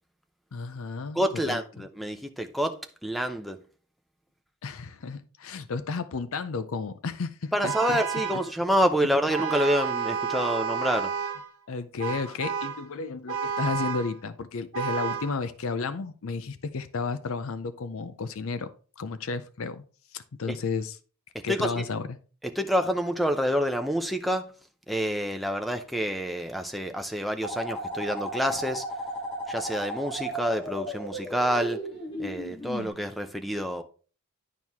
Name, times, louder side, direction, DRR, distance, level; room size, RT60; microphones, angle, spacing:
voice 1, 0.5-1.6 4.6-8.0 11.7-18.7 19.0-19.8 20.1-21.0 21.4-22.2, left 4 dB, 65° left, 0.5 m, -32 dB
voice 2, 1.1-3.6 7.5-11.1 20.5-20.6 21.5-21.8 22.6-24.5 24.9-28.8 29.5-31.8 32.2-33.8, equal, ahead, 0.6 m, -27 dB
Vehicle horn car horn honking, 7.6-8.5 9.3-11.5 12.0-12.8 13.3-14.1 14.7-15.3, right 6 dB, 70° right, 1.0 m, -31 dB
sound 1, 27.4-32.9, equal, 25° left, 1.5 m, -35 dB
10.5 x 4.6 x 3.5 m
head